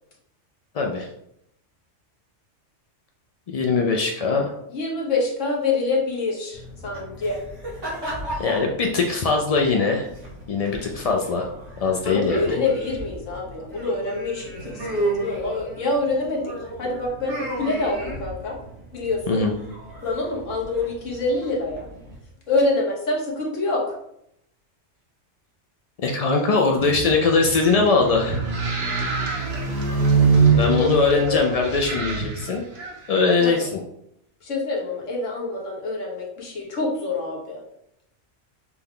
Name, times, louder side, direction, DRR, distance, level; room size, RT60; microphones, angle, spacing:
voice 1, 0.7-1.1 3.5-4.6 8.3-10.1 10.5-11.5 11.8-12.6 19.3-19.5 26.0-28.4 30.5-32.6 33.1-33.8, left 4 dB, 65° left, 1 dB, 0.3 m, -21 dB
voice 2, 4.7-7.4 12.0-18.6 18.9-19.4 20.0-21.9 22.5-24.0 30.7-31.6 33.4-33.5 34.4-37.6, left 3 dB, 90° left, -1 dB, 1.4 m, -26 dB
sound 1, 6.5-22.1, right 1 dB, 85° right, 2.0 m, -34 dB
sound 2, 26.7-32.2, right 5 dB, 20° right, 1.0 m, -23 dB
sound 3, 26.9-33.2, right 3 dB, 60° right, 1.2 m, -33 dB
6.0 x 2.2 x 3.6 m, 0.77 s
omnidirectional pair, 1.2 m